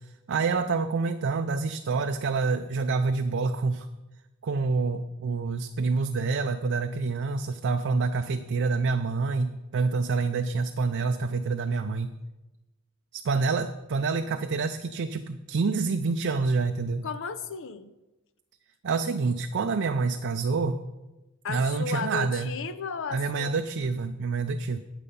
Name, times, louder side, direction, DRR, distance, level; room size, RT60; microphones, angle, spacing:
voice 1, 0.3-3.9 4.4-12.1 13.1-17.0 18.8-20.8 21.5-22.5 23.1-24.8, right 4 dB, 55° right, 7 dB, 0.4 m, -27 dB
voice 2, 17.0-17.9 21.4-23.5, left 5 dB, 60° left, 12 dB, 0.6 m, -34 dB
9.0 x 8.5 x 5.4 m, 1.0 s
head